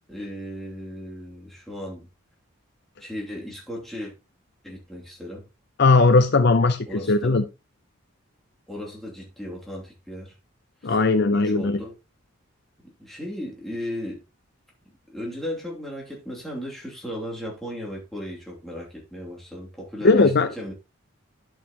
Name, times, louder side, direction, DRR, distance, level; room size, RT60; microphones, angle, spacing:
voice 1, 0.1-2.1 3.0-4.1 4.6-5.5 6.9-7.4 8.7-10.3 10.8-11.0 11.3-12.0 13.0-14.2 15.1-20.7, equal, ahead, 2.7 m, -36 dB
voice 2, 5.8-7.4 10.8-11.8 20.0-20.5, left 3 dB, 50° left, 0.5 m, -18 dB
11.0 x 6.5 x 3.0 m
head